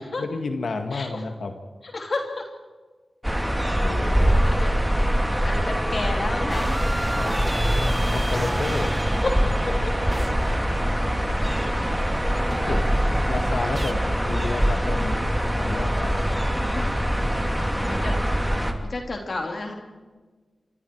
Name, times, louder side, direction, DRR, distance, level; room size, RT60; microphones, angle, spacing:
voice 1, 0.0-1.5 3.7-4.5 7.2-8.9 12.5-12.8 13.3-16.3, left 3 dB, 75° left, 5 dB, 1.9 m, -31 dB
voice 2, 1.8-2.5 4.4-4.8 5.4-6.9 9.2-9.4 9.7-9.9 12.2-12.8 13.2-13.3 16.6-16.9 17.7-18.2 18.9-19.7, left 2 dB, 60° left, 2 dB, 3.4 m, -31 dB
sound 1, 3.2-18.7, equal, 5° right, 2.8 m, -23 dB
sound 2, 6.5-11.6 12.5-13.9, right 1 dB, 20° right, 1.2 m, -33 dB
27.0 x 24.0 x 4.7 m, 1.4 s
cardioid pair, 50°, 0 cm